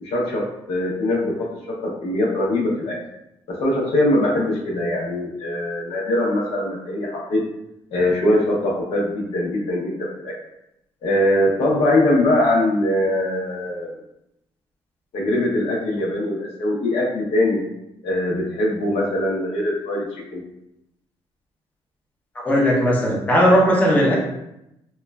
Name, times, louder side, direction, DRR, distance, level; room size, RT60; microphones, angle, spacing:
voice 1, 0.0-3.0 3.5-7.4 7.9-10.3 11.0-13.9 15.1-17.6 18.0-20.4, left 1 dB, 80° left, -3 dB, 0.7 m, -22 dB
voice 2, 22.4-24.2, equal, 15° left, -3 dB, 0.6 m, -17 dB
3.0 x 2.2 x 2.2 m, 0.84 s
cardioid pair, 125°, 10 cm